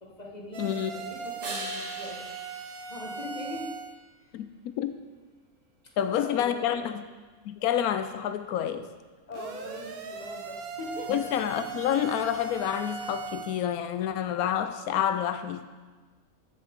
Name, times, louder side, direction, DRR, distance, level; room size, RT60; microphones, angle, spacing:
voice 1, 0.0-2.3 2.9-3.7 5.8-6.9 9.3-11.2, left 2 dB, 30° left, -2 dB, 1.6 m, -41 dB
sound 1, 0.5-4.0 9.3-13.6, right 5 dB, 90° right, 1.3 m, -39 dB
voice 2, 0.6-0.9 4.3-4.9 6.0-7.1 7.5-8.9 11.1-15.6, left 10 dB, 90° left, 10 dB, 1.1 m, -28 dB
sound 2, 1.4-4.0 9.7-13.7, right 2 dB, 40° right, 1.4 m, -45 dB
14.0 x 7.2 x 3.6 m, 1.3 s
omnidirectional pair, 1.5 m